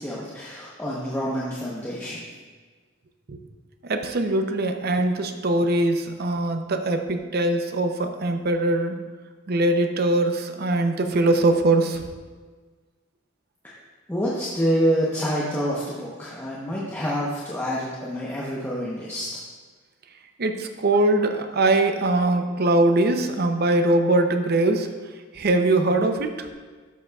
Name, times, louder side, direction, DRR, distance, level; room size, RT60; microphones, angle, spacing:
voice 1, 0.0-2.2 14.1-19.3, equal, 10° left, -6 dB, 0.9 m, -27 dB
voice 2, 3.8-9.0 9.5-12.1 20.4-24.9 25.3-26.5, right 2 dB, 50° right, 6 dB, 0.6 m, -22 dB
11.5 x 7.2 x 2.4 m, 1.5 s
head